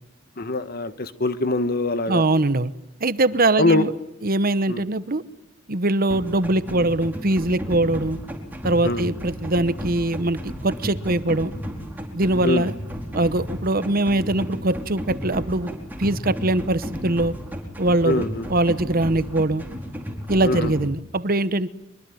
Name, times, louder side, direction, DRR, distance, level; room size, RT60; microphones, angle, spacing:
voice 1, 0.4-2.2 3.6-3.8 4.7-4.8 8.8-9.0 12.4-12.6 18.0-18.4 20.4-20.7, left 2 dB, 50° left, 11 dB, 1.6 m, -23 dB
voice 2, 2.1-2.7 3.0-4.0 4.2-5.2 5.7-8.2 8.6-11.5 12.1-12.7 13.1-15.7 16.0-17.3 17.8-19.6 20.3-21.7, right 2 dB, 45° right, 14 dB, 1.0 m, -22 dB
sound 1, 6.1-20.9, equal, 10° right, 4.6 m, -33 dB
24.0 x 23.5 x 9.5 m, 0.86 s
head